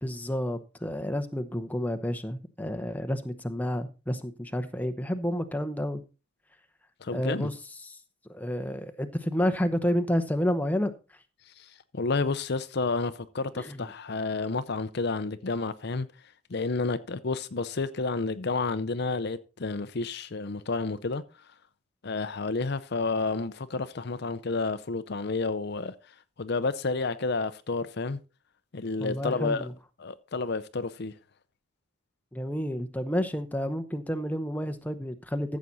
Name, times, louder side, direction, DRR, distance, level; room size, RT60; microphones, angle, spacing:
voice 1, 0.0-6.0 7.1-7.6 7.8-8.0 8.3-10.9 13.6-13.9 29.0-29.7 32.3-35.6, equal, 10° left, 0.8 m, -30 dB
voice 2, 7.0-7.5 11.6-11.7 11.9-16.1 16.5-21.2 22.0-25.9 26.4-28.2 28.7-29.7 30.0-31.1, left 3 dB, 55° left, 0.6 m, -30 dB
14.0 x 7.4 x 4.0 m
head